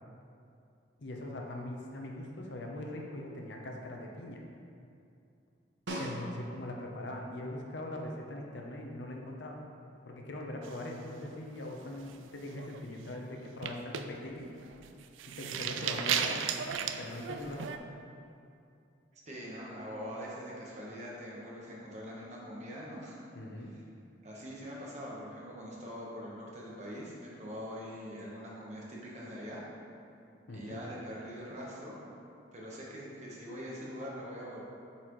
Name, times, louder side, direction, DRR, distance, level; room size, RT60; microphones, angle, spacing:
voice 1, 1.0-4.4 6.0-9.6 10.0-14.5 15.3-16.4 17.0-17.9 23.3-23.7 30.5-30.8, left 1 dB, 65° left, 1 dB, 0.7 m, -41 dB
Snare drum, 5.9-6.8 11.2-11.3, right 1 dB, 65° right, 0.9 m, -39 dB
sound 1, 10.6-11.5 11.9-12.2 12.5-12.8 13.5-17.8, right 8 dB, 85° right, 0.3 m, -35 dB
voice 2, 19.1-23.2 24.2-29.6 30.5-32.0 32.5-34.6, equal, 35° right, -4 dB, 1.1 m, -43 dB
7.7 x 4.2 x 3.1 m, 2.5 s
head